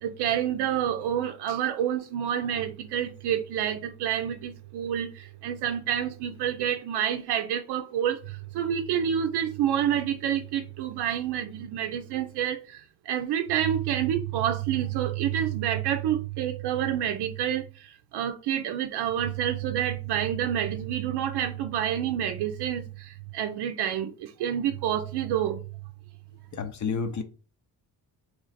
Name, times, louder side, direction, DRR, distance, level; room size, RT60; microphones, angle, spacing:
voice 1, 0.0-8.2 8.5-12.8 13.1-17.6 18.1-25.6, right 10 dB, 90° right, 0.5 m, -28 dB
voice 2, 26.5-27.2, left 5 dB, 50° left, 0.6 m, -30 dB
3.2 x 3.0 x 4.0 m
cardioid pair, 110°, 39 cm